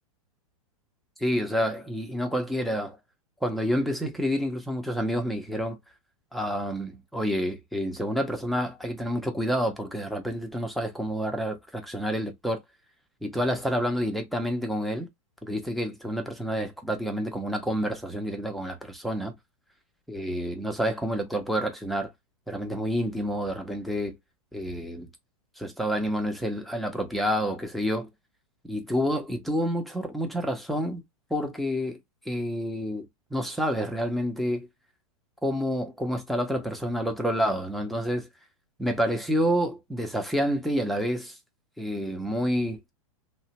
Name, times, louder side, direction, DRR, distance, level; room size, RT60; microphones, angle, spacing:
voice 1, 1.2-3.0 3.4-5.8 6.3-12.6 13.2-15.1 15.4-19.3 20.1-22.1 22.5-24.1 24.5-25.1 25.6-28.1 28.6-31.0 31.3-32.0 32.3-33.0 33.3-34.7 35.4-38.3 38.8-41.4 41.8-42.8, equal, ahead, 0.6 m, -28 dB
2.7 x 2.1 x 2.8 m
hypercardioid pair, 120°, 18 cm